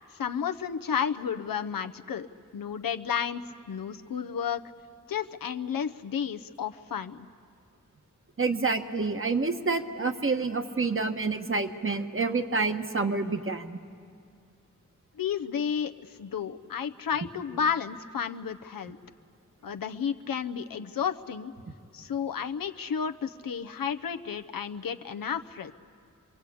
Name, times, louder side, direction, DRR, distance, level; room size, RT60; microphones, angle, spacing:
voice 1, 0.1-2.3 2.5-3.4 3.7-4.6 5.1-7.3 15.2-19.0 19.6-21.5 21.9-25.7, left 7 dB, 85° left, 7 dB, 0.8 m, -32 dB
voice 2, 8.4-13.8, right 4 dB, 40° right, 7 dB, 1.4 m, -28 dB
28.0 x 22.5 x 8.5 m, 2.3 s
cardioid pair, 65°, 33 cm